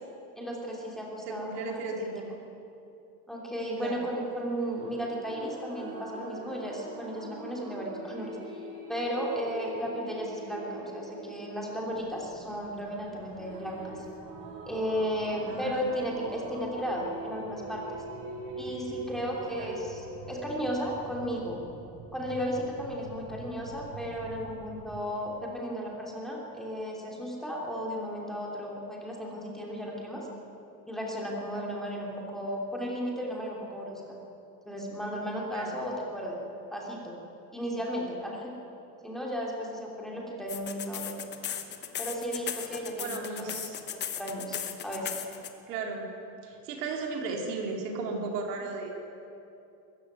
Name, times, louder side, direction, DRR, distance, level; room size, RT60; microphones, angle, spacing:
voice 1, 0.3-1.8 3.3-8.4 8.9-14.0 14.6-18.0 18.6-21.6 22.1-30.3 30.9-34.0 34.6-36.4 36.7-37.2 37.5-38.5 39.0-41.1 42.0-43.5 44.1-44.6 44.8-45.1, equal, ahead, -3 dB, 3.0 m, -34 dB
voice 2, 1.3-2.3 3.8-4.0 15.4-15.9 19.6-19.7 31.5-31.7 35.5-35.7 43.0-43.8 45.7-46.1 46.4-48.9, right 4 dB, 75° right, 1 dB, 4.1 m, -35 dB
sound 1, 4.7-20.7, right 2 dB, 45° right, 4.3 m, -43 dB
sound 2, 11.9-25.0, right 6 dB, 15° right, 0.6 m, -49 dB
sound 3, 40.5-45.5, left 9 dB, 20° left, 1.2 m, -36 dB
21.5 x 14.5 x 9.7 m, 2.8 s
supercardioid pair, 160°, 48 cm